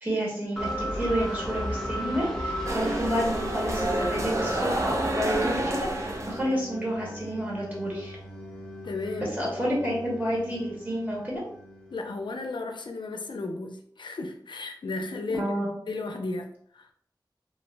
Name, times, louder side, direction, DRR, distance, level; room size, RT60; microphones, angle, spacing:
voice 1, 0.0-8.2 9.2-11.4 15.3-15.7, equal, 25° right, -4 dB, 1.1 m, -30 dB
sound 1, 0.6-12.3, equal, 5° left, 0.8 m, -36 dB
sound 2, 2.7-6.5, right 1 dB, 40° right, 0.4 m, -29 dB
voice 2, 8.8-9.3 11.9-15.6 15.9-16.9, left 3 dB, 80° left, 4 dB, 0.4 m, -34 dB
2.5 x 2.0 x 3.2 m, 0.63 s
wide cardioid pair, 65°, 8 cm